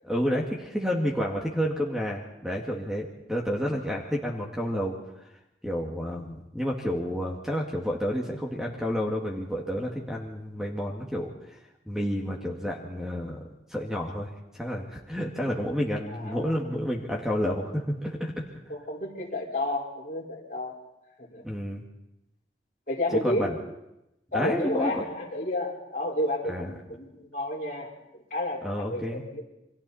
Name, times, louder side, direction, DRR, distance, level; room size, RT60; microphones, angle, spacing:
voice 1, 0.0-5.3 5.6-18.3 21.4-21.8 23.2-23.6 24.3-25.0 26.5-26.7 28.6-29.2, equal, 5° right, -1 dB, 2.0 m, -30 dB
voice 2, 16.1-16.6 18.7-20.7 21.2-21.4 22.9-23.5 24.3-29.4, left 1 dB, 45° left, -2 dB, 4.8 m, -31 dB
29.0 x 24.5 x 4.2 m, 0.88 s
head